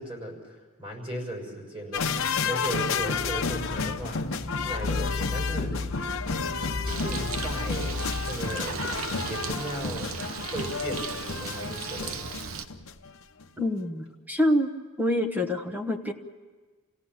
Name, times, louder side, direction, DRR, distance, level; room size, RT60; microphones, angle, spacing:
voice 1, 0.0-5.8 6.9-8.8 9.2-12.2, right 1 dB, 30° right, 0 dB, 6.1 m, -37 dB
sound 1, 1.9-13.1 13.4-13.5, left 5 dB, 70° left, 1.0 m, -31 dB
sound 2, 2.8-8.6, left 3 dB, 20° left, 0.7 m, -35 dB
Bird, 6.9-12.7, right 5 dB, 75° right, 0.9 m, -36 dB
voice 2, 13.6-14.7 15.0-16.1, left 1 dB, 10° right, 6 dB, 1.2 m, -26 dB
29.0 x 17.0 x 7.5 m, 1.4 s
head